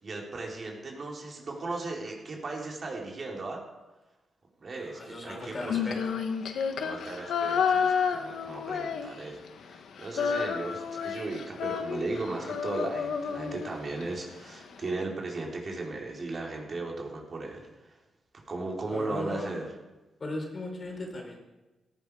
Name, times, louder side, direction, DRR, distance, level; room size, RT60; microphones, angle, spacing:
voice 1, 0.0-3.6 4.6-6.0 6.8-18.0 18.5-19.7, right 3 dB, 40° right, -1 dB, 4.1 m, -36 dB
voice 2, 4.7-6.0 18.9-19.6 20.2-21.4, left 2 dB, 35° left, 1 dB, 4.5 m, -37 dB
Female singing, 5.6-9.5 9.7-14.0, left 6 dB, 80° left, 1.5 m, -30 dB
17.5 x 15.5 x 4.9 m, 1.1 s
cardioid pair, 115°, 0 cm